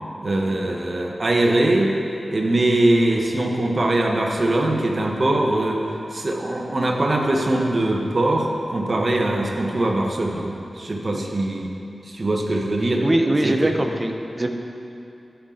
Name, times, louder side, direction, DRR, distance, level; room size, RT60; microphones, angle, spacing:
voice 1, 0.2-1.9 2.3-5.8 6.1-11.7 12.1-13.0 13.4-13.7, right 1 dB, 50° right, 1 dB, 1.2 m, -22 dB
voice 2, 13.0-14.5, right 1 dB, 30° right, 4 dB, 0.8 m, -22 dB
14.0 x 5.8 x 3.9 m, 2.7 s
wide cardioid pair, 60°, 0 cm